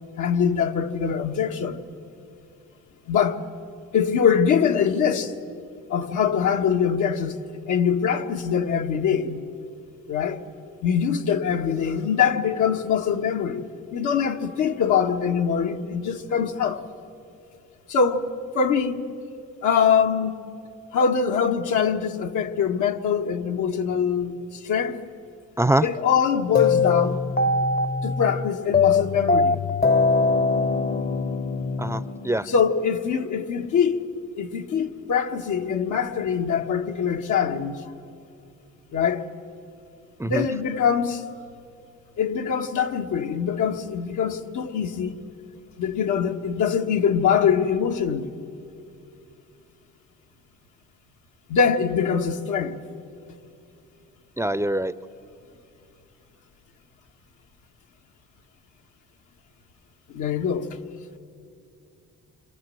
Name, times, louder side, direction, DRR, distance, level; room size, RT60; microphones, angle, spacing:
voice 1, 0.2-1.8 3.1-3.4 3.9-5.3 5.9-7.4 7.7-9.4 10.1-10.4 10.8-16.8 17.9-19.1 19.6-20.3 20.9-25.0 25.8-27.2 28.0-29.6 32.4-34.1 34.3-37.8 38.9-39.2 40.2-41.2 42.2-45.3 45.8-48.3 51.5-52.8 60.1-60.7, left 7 dB, 80° left, 1.6 m, -23 dB
sound 1, 26.5-32.7, left 4 dB, 30° left, 0.8 m, -22 dB
voice 2, 31.8-32.5 40.2-40.4 54.4-54.9, right 1 dB, 10° right, 0.6 m, -23 dB
28.0 x 25.5 x 7.8 m
cardioid pair, 90°, 30 cm